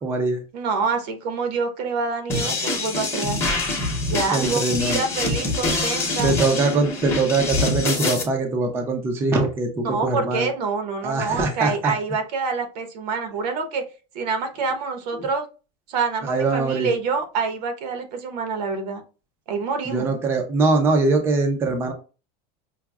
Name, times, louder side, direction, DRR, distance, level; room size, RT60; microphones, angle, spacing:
voice 1, 0.0-0.4 4.3-5.0 6.2-10.5 11.0-11.9 15.1-15.3 16.2-16.9 19.9-21.9, right 3 dB, 10° right, 0.4 m, -22 dB
voice 2, 0.5-3.4 4.1-6.4 9.8-13.8 14.1-15.5 15.9-19.0 19.5-20.1, right 4 dB, 80° right, 0.9 m, -26 dB
sound 1, 2.3-8.2, left 2 dB, 10° left, 0.8 m, -25 dB
5.7 x 2.0 x 2.3 m
supercardioid pair, 170°, 21 cm